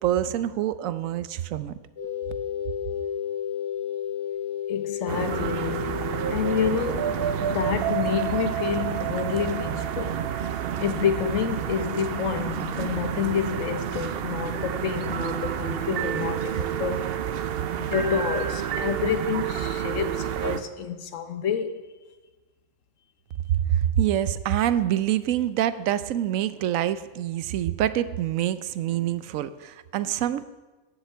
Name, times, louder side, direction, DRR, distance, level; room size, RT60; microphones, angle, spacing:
voice 1, 0.0-1.7 23.5-30.4, right 11 dB, 80° right, 1.0 m, -26 dB
sound 1, 2.0-8.5, left 9 dB, 55° left, 3.1 m, -33 dB
voice 2, 4.7-5.9 6.3-7.1 7.4-10.2 10.8-17.1 17.8-21.8, left 7 dB, 70° left, 1.2 m, -28 dB
sound 2, 5.1-20.6, right 9 dB, 60° right, 0.7 m, -29 dB
9.4 x 8.0 x 7.7 m
omnidirectional pair, 1.4 m